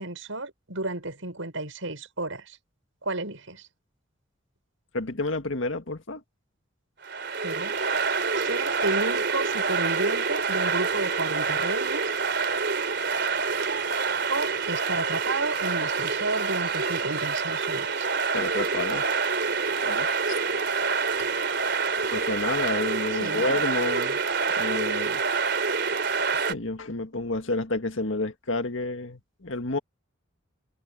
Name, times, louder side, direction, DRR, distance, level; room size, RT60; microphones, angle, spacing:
voice 1, 0.0-2.6 3.0-3.7 7.4-7.8 8.3-12.1 14.3-18.1 23.1-23.5, right 2 dB, 80° right, 6.4 m, -32 dB
voice 2, 4.9-6.2 18.3-19.1 19.8-20.4 22.1-24.2 24.6-25.2 26.3-29.8, left 2 dB, 75° left, 1.8 m, -30 dB
sound 1, 7.0-26.5, right 5 dB, 55° right, 4.1 m, -27 dB
open air
head